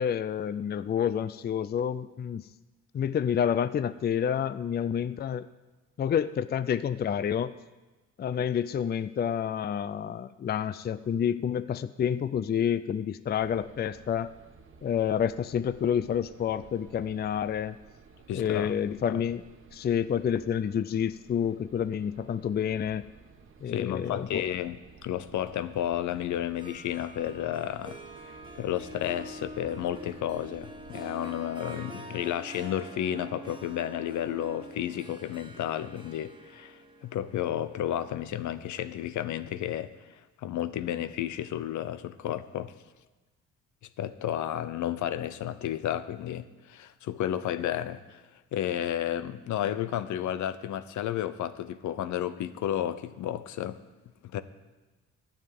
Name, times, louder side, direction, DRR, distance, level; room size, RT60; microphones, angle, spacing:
voice 1, 0.0-2.5 2.9-5.5 6.0-7.5 8.2-14.3 14.8-17.8 18.3-19.4 19.7-23.1 23.6-24.4, left 8 dB, 35° left, 14 dB, 0.4 m, -29 dB
sound 1, 13.4-30.9, right 4 dB, 45° right, 1.2 m, -54 dB
voice 2, 18.3-18.7 19.1-19.2 23.7-24.8 25.0-28.0 28.3-42.7 44.0-48.2 48.5-53.8 54.3-54.4, left 11 dB, 75° left, 13 dB, 0.8 m, -32 dB
Harp, 26.4-39.3, right 1 dB, 15° right, 1.5 m, -46 dB
12.0 x 7.1 x 9.3 m, 1.2 s
cardioid pair, 90°, 30 cm